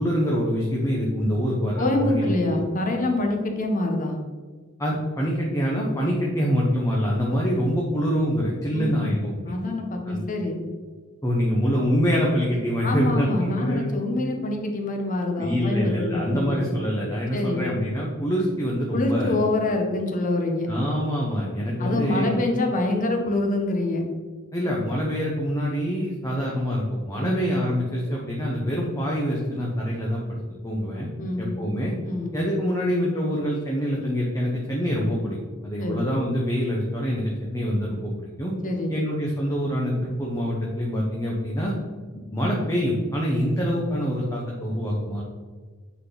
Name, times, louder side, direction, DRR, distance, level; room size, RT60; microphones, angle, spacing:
voice 1, 0.0-2.3 4.8-9.6 10.1-10.3 11.2-13.9 15.4-19.4 20.7-22.3 24.5-31.1 31.4-31.9 32.3-35.4 35.6-38.5 38.9-41.7 42.3-45.2, equal, 15° left, -3 dB, 0.9 m, -25 dB
voice 2, 1.8-4.2 8.7-9.1 9.4-10.6 12.8-16.8 17.3-17.7 18.9-20.7 21.8-24.0 27.2-27.4 31.2-31.5 32.0-32.4 35.8-36.0 38.6-39.0, left 2 dB, 40° left, 3 dB, 1.1 m, -26 dB
8.5 x 4.1 x 3.9 m, 1.5 s
head